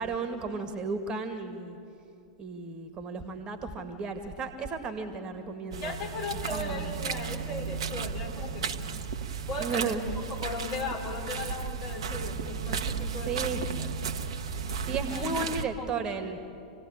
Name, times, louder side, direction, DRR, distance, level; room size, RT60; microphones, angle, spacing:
voice 1, 0.0-1.8 2.4-6.0 6.5-6.9 9.6-10.0 13.3-13.6 14.8-16.4, right 4 dB, 25° right, 7 dB, 2.0 m, -34 dB
sound 1, 5.7-15.6, right 5 dB, 60° right, 1.1 m, -34 dB
voice 2, 5.8-8.9 9.5-10.0 10.3-13.9 15.1-15.9, left 3 dB, 45° left, 1 dB, 4.9 m, -37 dB
27.0 x 17.0 x 8.8 m, 2.6 s
figure-of-eight pair, 95°, 3 cm